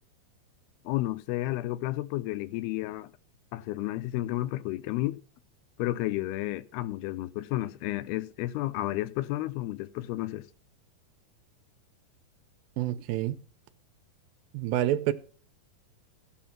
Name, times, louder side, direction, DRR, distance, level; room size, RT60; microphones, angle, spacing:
voice 1, 0.9-3.1 3.5-5.2 5.8-10.4, left 16 dB, 85° left, 2.7 m, -32 dB
voice 2, 12.8-13.4 14.5-15.1, right 13 dB, 75° right, 2.4 m, -28 dB
15.0 x 5.1 x 5.8 m
omnidirectional pair, 4.5 m